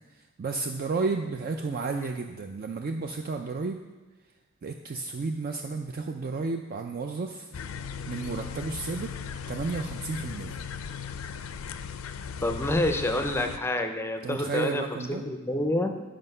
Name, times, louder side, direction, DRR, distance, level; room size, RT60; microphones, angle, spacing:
voice 1, 0.4-3.8 4.6-7.5 8.1-9.1 9.5-10.6 14.2-15.2, right 4 dB, 45° right, 4 dB, 0.4 m, -32 dB
sound 1, 7.5-13.6, left 6 dB, 85° left, 0.4 m, -37 dB
voice 2, 12.4-14.8 15.1-16.0, left 1 dB, 10° left, 6 dB, 0.5 m, -28 dB
7.7 x 5.1 x 5.4 m, 1.2 s
head